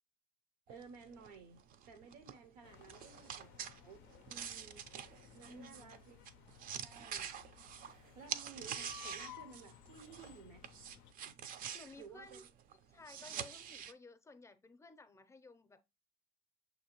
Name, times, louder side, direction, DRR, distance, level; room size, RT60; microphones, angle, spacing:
sound 1, 0.7-10.4 10.6-13.9, right 8 dB, 45° right, 0.4 m, -46 dB
voice 1, 0.7-1.6 1.9-4.9 5.3-6.2 6.8-7.2 8.1-10.6 11.3-11.4 12.0-12.4, right 5 dB, 80° right, 0.7 m, -55 dB
sound 2, 2.6-11.1, left 8 dB, 65° left, 0.4 m, -57 dB
voice 2, 5.5-6.0 11.7-12.4 12.9-15.8, left 3 dB, 15° left, 0.5 m, -56 dB
6.2 x 2.7 x 2.9 m
supercardioid pair, 90°, 20 cm